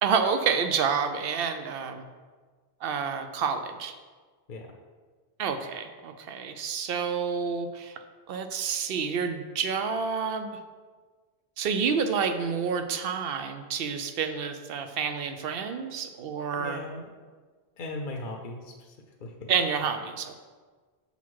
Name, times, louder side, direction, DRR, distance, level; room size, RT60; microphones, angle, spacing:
voice 1, 0.0-2.1 2.8-3.9 5.4-8.0 8.3-10.5 11.6-16.8 19.5-20.3, right 6 dB, 70° right, 8 dB, 0.8 m, -29 dB
voice 2, 16.6-17.1 17.8-18.9 19.2-19.5, left 2 dB, 55° left, 1 dB, 0.8 m, -38 dB
7.0 x 4.1 x 4.6 m, 1.5 s
omnidirectional pair, 1.1 m